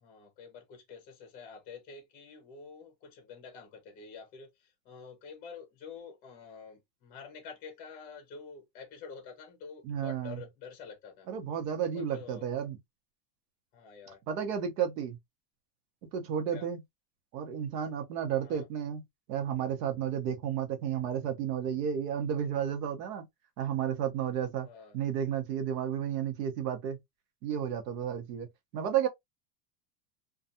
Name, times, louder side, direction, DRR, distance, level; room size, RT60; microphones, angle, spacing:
voice 1, 0.0-4.5 4.9-11.3 11.9-12.4 13.7-14.2 16.5-16.7 18.4-18.6 24.6-25.0, left 5 dB, 20° left, 0.6 m, -48 dB
voice 2, 9.8-10.4 11.3-12.8 14.3-15.2 16.1-16.8 17.3-23.3 23.6-24.7 24.9-27.0 27.4-28.5 28.7-29.1, right 9 dB, 70° right, 1.0 m, -32 dB
2.4 x 2.3 x 2.6 m
supercardioid pair, 165°, 49 cm